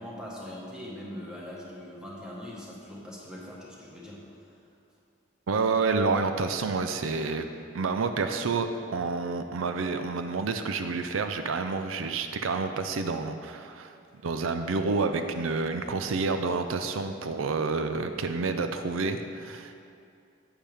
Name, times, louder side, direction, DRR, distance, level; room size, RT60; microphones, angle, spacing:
voice 1, 0.0-4.5, left 1 dB, 5° right, -5 dB, 1.5 m, -41 dB
voice 2, 5.5-7.5 7.7-14.0 14.2-19.8, right 4 dB, 85° right, 7 dB, 0.5 m, -29 dB
9.9 x 8.9 x 3.5 m, 2.4 s
head